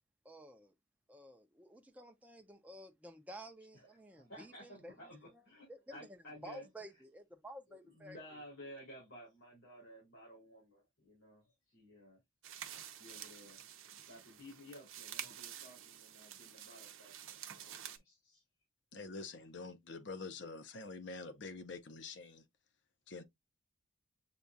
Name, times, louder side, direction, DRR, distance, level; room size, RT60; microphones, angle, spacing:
voice 1, 0.2-0.7 1.1-4.9 5.7-8.2, equal, 5° right, 0.4 m, -52 dB
voice 2, 3.7-6.7 7.7-12.2 12.5-13.6 13.9-18.4, equal, 80° left, 3.1 m, -55 dB
sound 1, 12.4-18.0, right 10 dB, 85° right, 0.6 m, -49 dB
voice 3, 18.9-22.4 23.1-23.2, left 3 dB, 65° left, 0.7 m, -46 dB
6.8 x 2.3 x 2.5 m
head